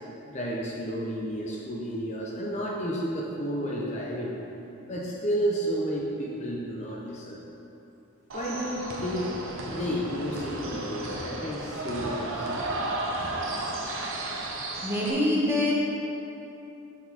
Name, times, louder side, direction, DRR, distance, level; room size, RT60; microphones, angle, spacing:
voice 1, 0.3-4.3 4.9-7.4 8.3-9.3 9.7-12.5, equal, 35° left, -3 dB, 0.7 m, -31 dB
sound 1, 8.3-15.1, right 2 dB, 85° right, 0.9 m, -33 dB
voice 2, 14.8-15.7, left 1 dB, 10° right, -6 dB, 1.2 m, -25 dB
7.2 x 6.3 x 4.1 m, 2.9 s
head